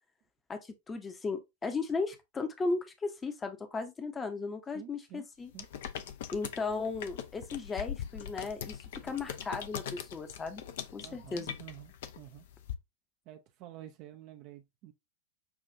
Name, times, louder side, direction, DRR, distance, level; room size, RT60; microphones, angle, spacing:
voice 1, 0.5-5.5 6.3-10.6 10.9-11.6, left 4 dB, 20° left, 0.8 m, -36 dB
voice 2, 4.7-5.2 5.5-5.7 11.0-12.5 13.3-14.9, right 13 dB, 40° right, 0.5 m, -50 dB
sound 1, 5.5-12.7, left 9 dB, 55° left, 0.6 m, -42 dB
6.9 x 2.4 x 2.7 m
figure-of-eight pair, 90°, 0 cm